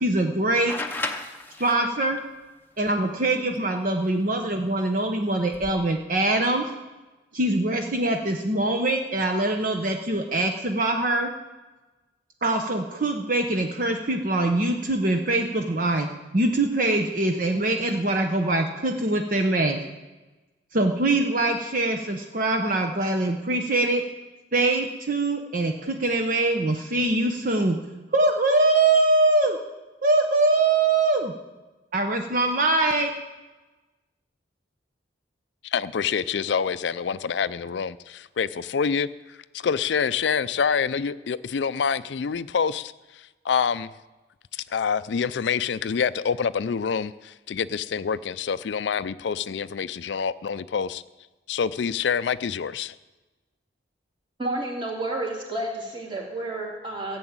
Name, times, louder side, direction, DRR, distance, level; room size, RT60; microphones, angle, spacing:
voice 1, 0.0-0.7 1.6-2.2 2.8-6.7 7.3-11.3 12.4-16.1 16.3-19.8 20.7-24.0 24.5-27.8 28.1-29.6 30.0-31.3 31.9-33.1, right 2 dB, 45° right, 4 dB, 0.8 m, -23 dB
sound 1, 0.7-2.2 4.1-4.2 5.4-5.7, left 2 dB, 10° left, 0.8 m, -33 dB
voice 2, 35.7-39.1 39.6-42.9 43.5-43.9 44.5-51.0 51.5-52.9, left 6 dB, 70° left, 15 dB, 0.4 m, -26 dB
voice 3, 54.4-57.2, right 2 dB, 25° right, -2 dB, 2.9 m, -30 dB
14.5 x 7.1 x 8.8 m, 1.2 s
head